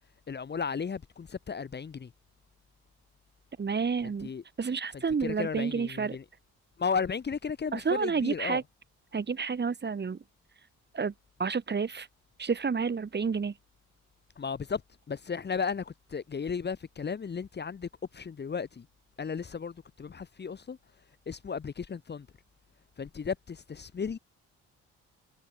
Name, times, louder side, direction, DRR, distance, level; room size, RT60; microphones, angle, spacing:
voice 1, 0.3-2.1 4.0-4.4 5.2-6.2 6.8-8.6 14.4-14.8 15.1-18.8 19.2-20.8 21.3-22.3 23.0-24.2, left 6 dB, 35° left, 1.5 m, -34 dB
voice 2, 3.6-4.3 4.6-6.2 7.7-8.6 9.1-10.2 10.9-11.1 11.4-12.1 12.4-13.5, right 5 dB, 35° right, 3.3 m, -30 dB
cardioid pair, 90°, 30 cm